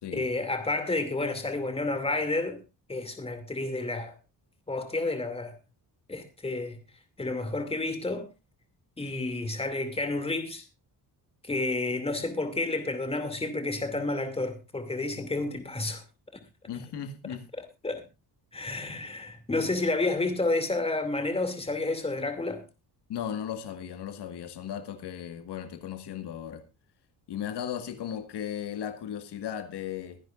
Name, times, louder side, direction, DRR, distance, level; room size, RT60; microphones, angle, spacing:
voice 1, 0.1-2.6 2.9-4.1 4.7-5.6 6.1-6.8 7.2-8.3 9.0-10.6 11.4-16.0 16.3-16.4 17.8-18.0 18.5-22.6, left 2 dB, 15° left, 2.5 m, -30 dB
voice 2, 16.7-17.4 23.1-26.6 27.3-30.2, left 9 dB, 85° left, 1.9 m, -36 dB
23.0 x 10.5 x 2.5 m
cardioid pair, 140°, 39 cm